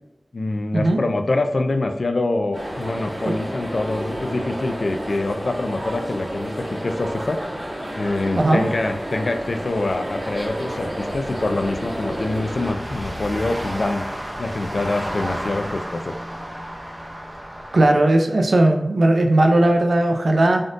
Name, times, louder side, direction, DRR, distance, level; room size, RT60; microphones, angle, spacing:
voice 1, 0.3-7.4 7.9-14.1 14.4-16.1, left 2 dB, 75° left, 6 dB, 0.3 m, -25 dB
sound 1, 2.5-12.7, equal, 45° right, 1.5 m, -31 dB
sound 2, 10.3-17.8, equal, 25° right, 0.6 m, -33 dB
voice 2, 17.7-20.6, right 1 dB, 85° right, 4 dB, 0.4 m, -17 dB
3.5 x 2.5 x 2.5 m, 0.96 s
wide cardioid pair, 65°, 0 cm